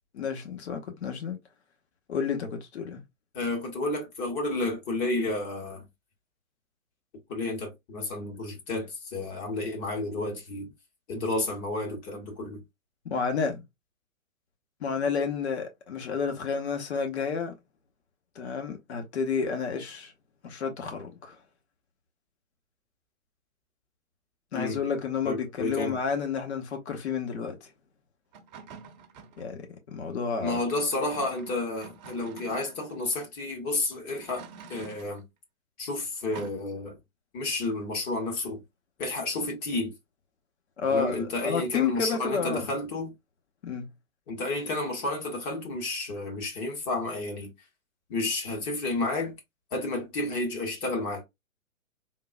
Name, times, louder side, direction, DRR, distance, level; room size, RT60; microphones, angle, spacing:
voice 1, 0.1-1.4 2.1-3.0 13.0-13.6 14.8-17.5 18.3-20.1 20.4-21.4 24.5-27.6 29.4-30.6 40.8-42.7 43.6-43.9, left 6 dB, 50° left, 1.1 m, -30 dB
voice 2, 3.3-5.9 7.3-10.7 11.1-12.6 24.5-24.8 25.2-26.0 30.4-35.2 35.8-37.0 37.3-38.6 39.0-39.9 40.9-43.1 44.3-47.5 48.1-49.3 49.7-51.2, left 2 dB, 25° left, 0.8 m, -31 dB
sound 1, 28.3-29.5 30.5-33.2 34.2-35.2 36.3-36.5, right 6 dB, 35° right, 0.7 m, -47 dB
3.7 x 2.3 x 2.4 m
figure-of-eight pair, 125°, 41 cm